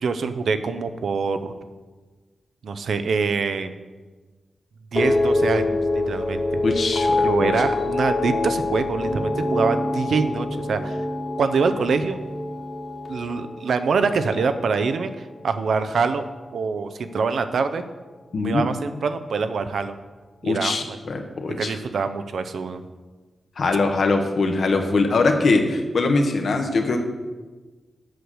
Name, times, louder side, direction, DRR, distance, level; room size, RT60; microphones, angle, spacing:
voice 1, 0.0-1.5 2.6-3.7 4.9-6.5 7.2-11.0 11.4-12.2 13.1-15.1 15.4-17.8 18.3-20.0 20.4-21.0 21.6-22.8, right 5 dB, 75° right, 10 dB, 0.6 m, -25 dB
sound 1, 4.9-15.3 15.6-16.2, left 2 dB, 30° left, 1.6 m, -25 dB
voice 2, 6.6-7.5 18.3-18.6 20.4-21.8 23.6-27.0, left 3 dB, 65° left, 5 dB, 1.2 m, -22 dB
8.1 x 6.6 x 6.3 m, 1.3 s
wide cardioid pair, 100°, 0 cm